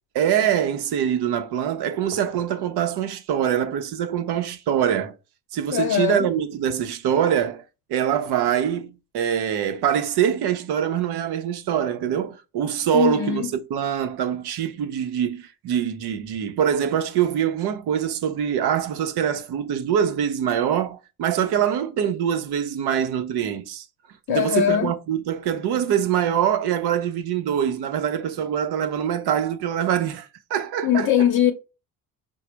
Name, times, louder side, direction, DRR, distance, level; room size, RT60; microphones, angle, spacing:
voice 1, 0.1-5.1 5.5-7.6 7.9-13.4 13.7-23.8 24.3-31.1, right 9 dB, 75° right, 0.8 m, -24 dB
voice 2, 5.7-6.3 12.9-13.5 24.3-24.9 30.8-31.5, left 10 dB, 65° left, 0.7 m, -21 dB
5.0 x 2.3 x 4.4 m
supercardioid pair, 70°, 39 cm